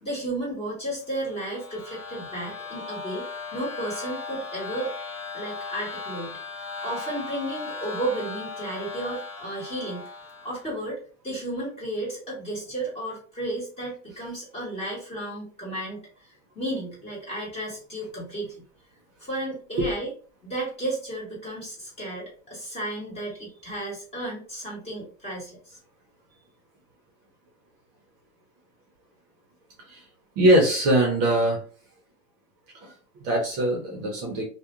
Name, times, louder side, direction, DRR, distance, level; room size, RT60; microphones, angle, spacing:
voice 1, 0.0-4.9 5.3-10.1 10.4-18.6 19.2-20.1 20.4-25.8, right 1 dB, 15° left, -5 dB, 1.0 m, -33 dB
sound 1, 1.1-10.8, left 4 dB, 35° left, 0.4 m, -37 dB
voice 2, 30.4-31.6 32.8-34.4, right 1 dB, 35° right, -1 dB, 0.7 m, -22 dB
2.3 x 2.1 x 2.9 m, 0.41 s
supercardioid pair, 150°, 40 cm